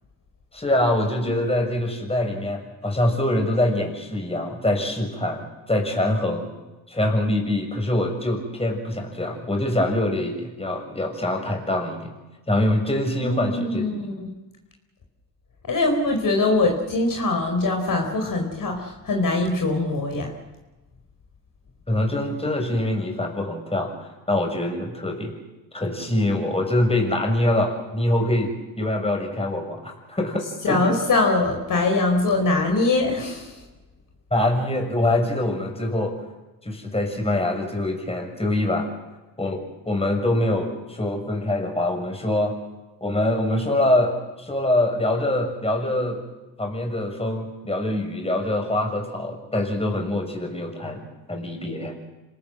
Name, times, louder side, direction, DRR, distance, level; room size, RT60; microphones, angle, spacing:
voice 1, 0.5-6.5 6.9-12.1 12.5-13.9 21.9-25.3 25.7-30.9 34.3-36.2 36.6-38.9 39.4-42.5 43.0-46.2 46.6-51.0 51.3-52.0, left 1 dB, 15° left, 3 dB, 6.5 m, -24 dB
voice 2, 13.2-14.3 15.7-20.3 30.6-33.6, left 2 dB, 45° left, 2 dB, 4.8 m, -22 dB
27.0 x 18.5 x 7.9 m, 1.1 s
supercardioid pair, 80°, 44 cm